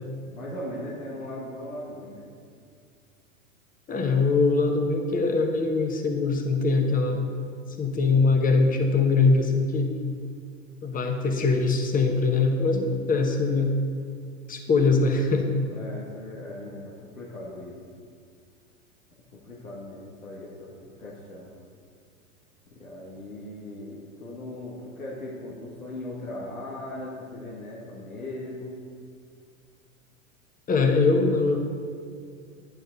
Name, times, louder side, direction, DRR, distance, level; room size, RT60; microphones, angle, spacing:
voice 1, 0.3-2.3 15.7-17.8 19.3-20.7 21.0-21.5 22.7-28.8, left 1 dB, 85° left, -5 dB, 1.7 m, -38 dB
voice 2, 3.9-7.3 7.8-9.9 10.8-13.7 14.5-15.5 30.7-31.6, left 3 dB, 20° left, 4 dB, 1.2 m, -22 dB
10.5 x 9.2 x 4.0 m, 2.2 s
hypercardioid pair, 95°, 41 cm